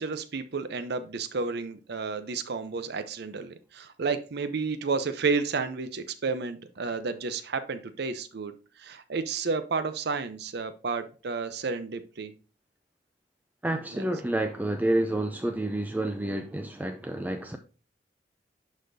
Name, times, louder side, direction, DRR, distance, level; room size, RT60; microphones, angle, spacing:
voice 1, 0.0-12.3 13.9-14.1, right 4 dB, 65° right, 0.6 m, -31 dB
voice 2, 13.6-17.6, right 1 dB, 10° right, 0.4 m, -29 dB
11.0 x 4.2 x 2.6 m
head